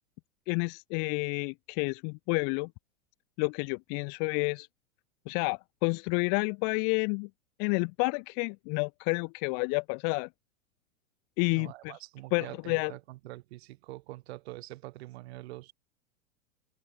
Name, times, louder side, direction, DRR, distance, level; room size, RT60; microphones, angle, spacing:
voice 1, 0.5-2.7 3.4-4.7 5.3-7.3 7.6-10.3 11.4-11.9 12.3-12.9, left 40 dB or more, 25° left, 0.4 m, -30 dB
voice 2, 11.5-15.7, right 18 dB, 55° right, 4.7 m, -45 dB
open air
figure-of-eight pair, 100°, 39 cm